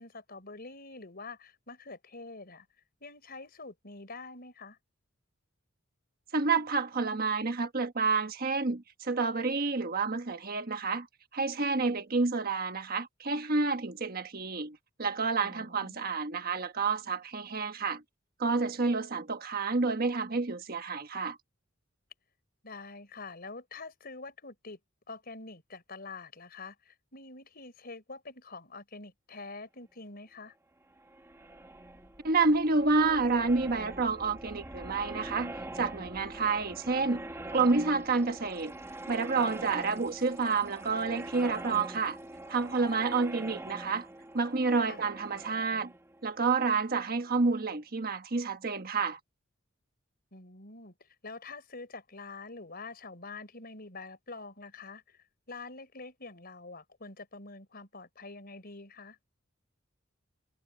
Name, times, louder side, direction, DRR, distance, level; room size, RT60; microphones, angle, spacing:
voice 1, 0.0-2.7 3.0-4.8 15.4-16.2 22.6-24.8 25.1-30.5 44.8-45.0 50.3-55.2 55.5-59.2, left 3 dB, 50° left, 4.8 m, -46 dB
voice 2, 6.3-11.1 11.3-18.0 18.4-21.4 32.2-37.3 37.5-38.7 39.1-42.2 42.5-44.1 44.3-45.9 46.2-49.2, right 4 dB, 50° right, 1.3 m, -29 dB
sound 1, 30.9-47.6, right 1 dB, 15° right, 1.3 m, -44 dB
head